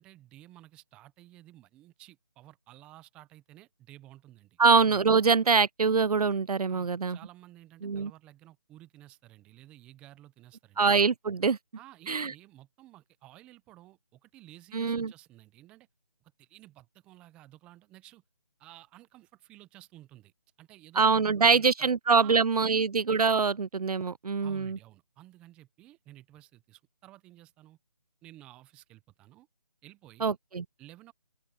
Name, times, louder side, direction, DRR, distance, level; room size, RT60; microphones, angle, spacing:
voice 1, 0.0-4.6 6.7-10.8 11.8-15.9 16.2-18.2 18.6-20.3 20.6-22.4 22.7-22.8 24.4-27.8 28.2-29.5 29.8-30.4 30.8-31.1, right 15 dB, 5° right, 0.7 m, -53 dB
voice 2, 4.6-7.2 7.8-8.1 10.8-11.6 12.1-12.3 14.7-15.1 21.0-24.8 30.2-30.6, right 5 dB, 65° right, 0.6 m, -24 dB
open air
figure-of-eight pair, 160°, 21 cm